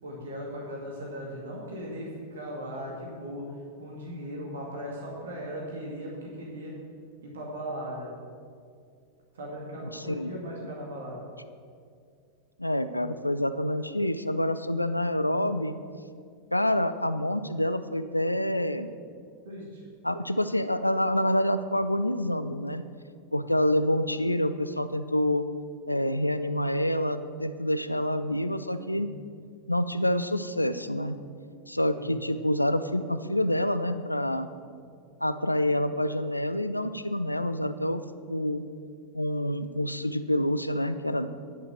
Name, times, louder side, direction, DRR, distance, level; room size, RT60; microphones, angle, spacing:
voice 1, 0.0-3.5 3.8-6.7 7.2-8.1 9.3-11.2 19.4-19.8 28.9-29.0 31.9-32.1, equal, 65° right, -2 dB, 2.1 m, -38 dB
voice 2, 9.9-10.3 12.6-15.8 16.5-18.9 20.0-22.8 23.3-25.4 25.9-29.1 29.7-31.2 31.7-34.5 35.2-38.0 38.3-38.6 39.1-41.3, left 1 dB, 85° left, 11 dB, 0.4 m, -27 dB
10.0 x 5.8 x 7.9 m, 2.2 s
figure-of-eight pair, 90°, 0 cm